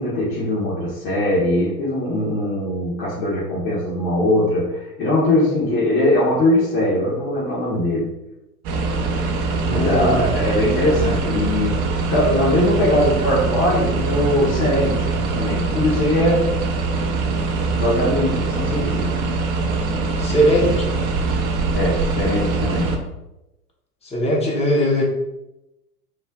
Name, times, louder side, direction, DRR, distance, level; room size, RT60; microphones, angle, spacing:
voice 1, 0.0-8.1 9.7-11.8 12.1-16.4 17.8-19.1 21.7-22.9, left 1 dB, 50° left, -8 dB, 1.2 m, -21 dB
sound 1, 8.6-23.0, right 3 dB, 30° right, 0.5 m, -23 dB
voice 2, 9.6-10.3 20.2-20.9 24.0-25.0, equal, 15° left, -1 dB, 0.7 m, -20 dB
3.2 x 2.5 x 3.5 m, 0.94 s
figure-of-eight pair, 95°, 47 cm